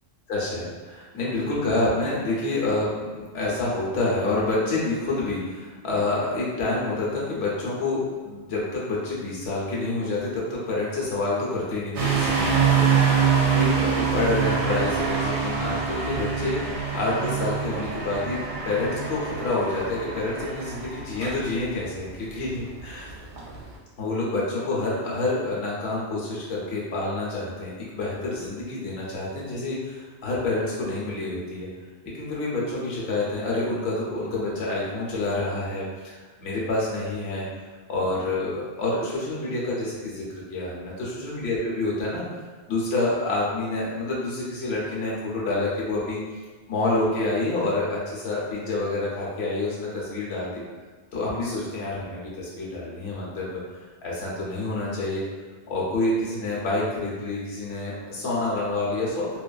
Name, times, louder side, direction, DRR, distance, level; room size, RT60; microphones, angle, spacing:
voice 1, 0.3-13.2 13.5-23.1 24.0-31.7 32.0-37.5 37.9-42.2 42.7-46.2 46.7-50.6 51.1-53.6 54.0-55.2 55.7-59.4, left 2 dB, 70° left, -5 dB, 1.0 m, -28 dB
sound 1, 11.9-23.7, right 6 dB, 80° right, 0.9 m, -25 dB
2.5 x 2.4 x 2.3 m, 1.3 s
omnidirectional pair, 1.2 m